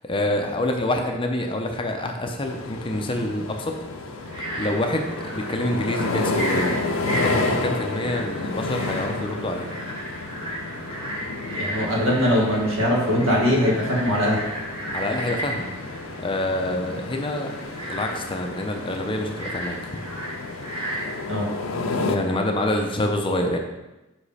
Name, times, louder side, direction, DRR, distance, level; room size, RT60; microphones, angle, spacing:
voice 1, 0.0-3.7 4.6-6.8 7.2-9.7 14.9-15.7 16.2-17.5 17.8-19.9 22.1-23.6, left 1 dB, 25° left, 3 dB, 0.6 m, -26 dB
sound 1, 2.4-22.2, left 3 dB, 70° left, 0.6 m, -31 dB
Frog, 4.2-22.9, right 1 dB, 25° right, 1.6 m, -35 dB
voice 2, 11.5-14.4 21.3-21.5, equal, 65° right, -3 dB, 1.8 m, -21 dB
5.8 x 5.0 x 4.2 m, 1.0 s
head